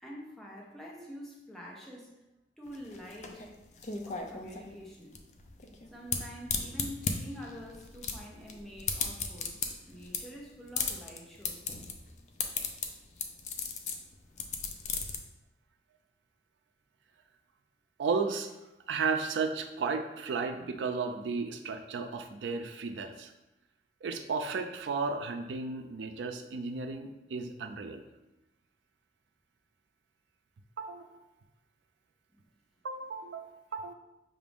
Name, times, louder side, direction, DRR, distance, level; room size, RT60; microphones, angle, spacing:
voice 1, 0.0-2.2 2.6-3.5 4.1-5.2 5.9-11.7 32.3-32.4, equal, ahead, -4 dB, 0.7 m, -46 dB
sound 1, 2.7-15.2, left 5 dB, 40° left, 0.4 m, -36 dB
voice 2, 18.0-18.5 18.9-23.3 24.0-28.0 30.8-31.1 32.8-33.9, right 4 dB, 85° right, 6 dB, 0.4 m, -34 dB
5.8 x 2.5 x 3.4 m, 0.97 s
head